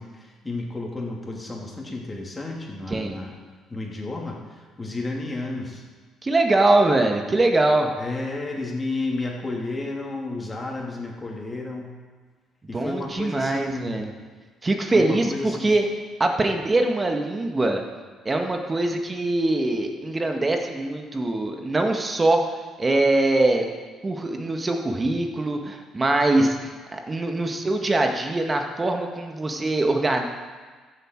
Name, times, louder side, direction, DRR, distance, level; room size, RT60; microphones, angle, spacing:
voice 1, 0.0-3.3 3.7-5.8 8.0-11.9 12.7-14.0 14.9-15.8, left 2 dB, 25° left, -1 dB, 3.0 m, -32 dB
voice 2, 6.2-7.9 12.7-14.1 14.6-15.9 16.2-17.8 18.2-22.4 22.8-23.7 24.0-30.2, right 2 dB, 30° right, 4 dB, 1.6 m, -22 dB
14.5 x 7.7 x 4.7 m, 1.4 s
hypercardioid pair, 55°, 0 cm